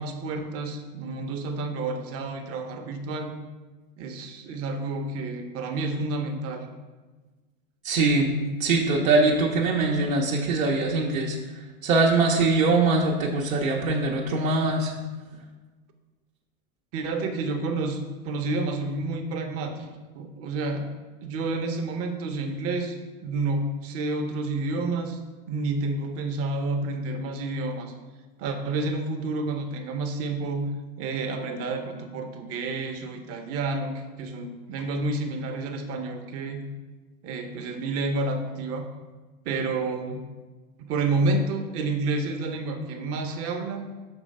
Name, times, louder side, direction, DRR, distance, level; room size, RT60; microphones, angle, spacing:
voice 1, 0.0-3.3 4.0-6.7 16.9-19.9 20.1-20.9 21.2-23.0 23.2-25.2 25.5-27.9 28.4-30.7 31.0-36.6 37.2-38.8 39.4-40.2 40.8-43.9, right 3 dB, 35° right, 5 dB, 0.8 m, -29 dB
voice 2, 7.8-8.3 8.6-11.4 11.8-14.9, right 3 dB, 75° right, -2 dB, 0.9 m, -22 dB
6.3 x 3.2 x 5.2 m, 1.3 s
hypercardioid pair, 100°, 40 cm